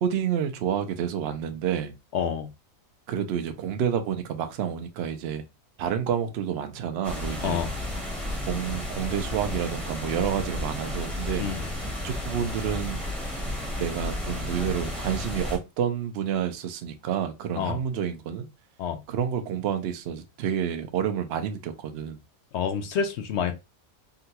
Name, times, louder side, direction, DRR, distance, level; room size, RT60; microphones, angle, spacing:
voice 1, 0.0-1.9 3.1-5.4 5.8-7.6 8.5-11.5 12.0-13.0 13.8-18.5 19.1-22.2, right 8 dB, 65° right, 0.7 m, -29 dB
voice 2, 2.1-2.5 7.4-7.7 11.4-11.6 17.6-17.8 18.8-19.0 22.5-23.6, left 7 dB, 65° left, 0.7 m, -28 dB
sound 1, 7.0-15.6, left 1 dB, ahead, 0.7 m, -32 dB
3.7 x 2.2 x 2.8 m
omnidirectional pair, 1.4 m